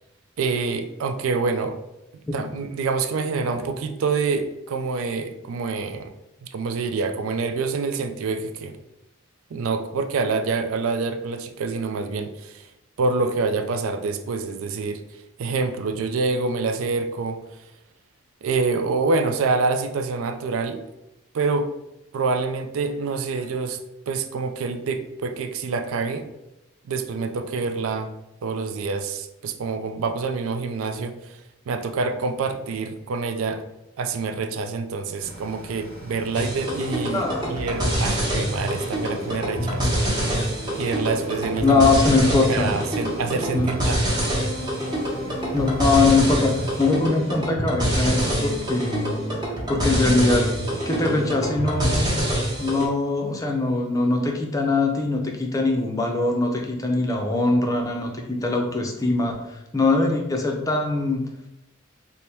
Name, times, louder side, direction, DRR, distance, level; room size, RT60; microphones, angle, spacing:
voice 1, 0.4-1.8 2.3-6.1 6.4-8.7 9.5-12.7 13.0-15.0 15.4-17.4 18.4-20.8 21.3-21.7 22.1-23.8 24.1-26.3 26.9-28.1 28.4-31.4 31.7-33.6 34.0-41.8 42.4-44.0, right 4 dB, 80° right, 8 dB, 0.4 m, -26 dB
sound 1, 35.2-46.8, equal, 50° right, 1.2 m, -42 dB
sound 2, 36.3-52.9, right 1 dB, 20° right, 0.9 m, -25 dB
voice 2, 37.1-37.5 41.6-42.7 43.5-43.7 45.5-49.2 49.7-50.5 50.9-52.1 52.6-59.4 59.7-61.2, left 3 dB, 15° left, 2 dB, 0.4 m, -22 dB
3.3 x 2.1 x 4.2 m, 0.91 s
head